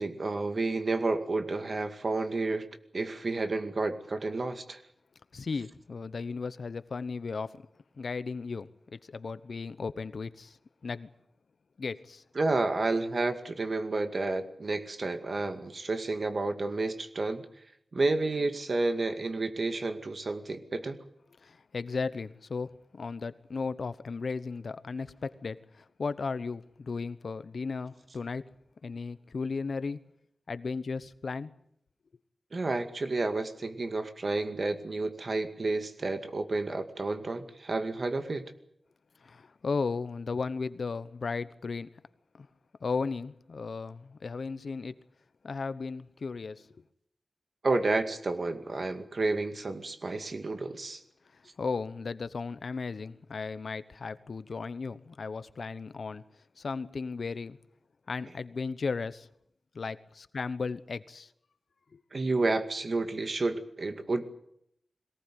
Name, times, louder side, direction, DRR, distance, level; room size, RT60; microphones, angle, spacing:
voice 1, 0.0-2.7 2.9-4.8 12.4-17.4 17.9-21.0 32.5-38.5 47.6-51.0 62.1-64.3, right 3 dB, 55° right, 8 dB, 2.2 m, -30 dB
voice 2, 5.3-7.6 8.0-10.6 10.8-11.1 11.8-12.2 21.4-28.5 28.8-30.0 30.5-31.5 39.2-41.9 42.4-42.5 42.8-44.9 45.4-46.8 51.6-56.2 56.6-57.6 58.1-59.3 59.7-61.3 61.9-62.0, left 4 dB, 75° left, 14 dB, 1.0 m, -35 dB
22.5 x 18.0 x 9.4 m, 0.73 s
wide cardioid pair, 95°, 0 cm